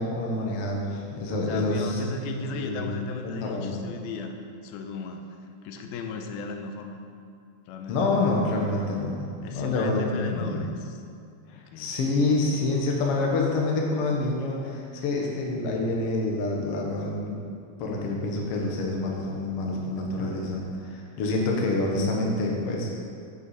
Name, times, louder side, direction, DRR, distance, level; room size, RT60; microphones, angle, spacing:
voice 1, 0.0-2.0 2.3-2.9 3.2-3.8 7.9-10.6 11.5-17.4 17.8-22.9, left 2 dB, 60° left, -1 dB, 1.5 m, -27 dB
voice 2, 1.5-4.3 4.6-5.4 5.6-7.0 7.7-8.3 9.4-11.0 11.5-12.0, left 3 dB, 90° left, 5 dB, 2.6 m, -36 dB
8.0 x 7.9 x 4.9 m, 2.4 s
omnidirectional pair, 4.3 m